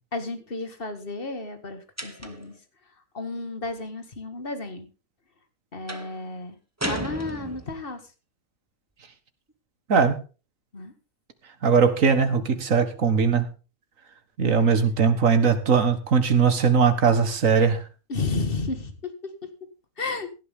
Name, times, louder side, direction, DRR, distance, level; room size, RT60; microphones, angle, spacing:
voice 1, 0.1-2.5 3.1-4.9 5.7-6.6 6.8-8.0 10.7-10.9 14.6-14.9 18.1-19.5 20.0-20.3, left 3 dB, 45° left, 9 dB, 2.1 m, -32 dB
sound 1, 2.0-2.6 5.9-6.2 6.8-7.9, right 1 dB, 10° right, 1.6 m, -33 dB
voice 2, 11.6-13.5 14.4-17.8, right 5 dB, 75° right, 10 dB, 2.0 m, -20 dB
17.5 x 12.0 x 3.7 m, 0.33 s
omnidirectional pair, 1.4 m